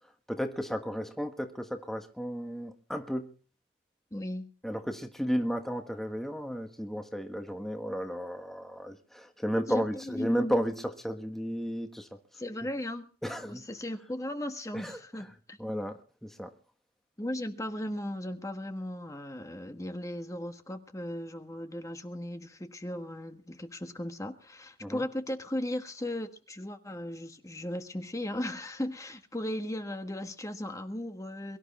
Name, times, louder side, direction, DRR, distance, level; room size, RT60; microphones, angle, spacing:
voice 1, 0.3-3.3 4.6-12.2 13.2-13.7 14.7-15.3 15.6-16.5 24.8-25.0, equal, ahead, 1.4 m, -33 dB
voice 2, 4.1-4.5 9.7-10.5 12.3-13.1 13.4-15.6 17.2-31.6, left 1 dB, 20° left, 1.5 m, -37 dB
23.0 x 13.0 x 4.2 m
head